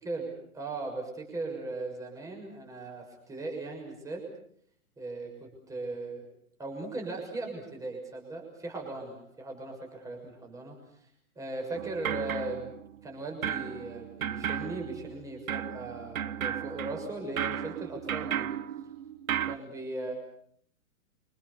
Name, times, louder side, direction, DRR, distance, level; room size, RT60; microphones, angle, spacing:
voice 1, 0.0-4.2 5.0-6.2 6.6-10.8 11.3-18.5 19.3-20.1, right 2 dB, 5° right, 2 dB, 6.5 m, -38 dB
sound 1, 11.8-13.1 13.4-19.6, right 9 dB, 70° right, 1.4 m, -35 dB
29.0 x 25.5 x 6.9 m, 0.66 s
hypercardioid pair, 160°, 43 cm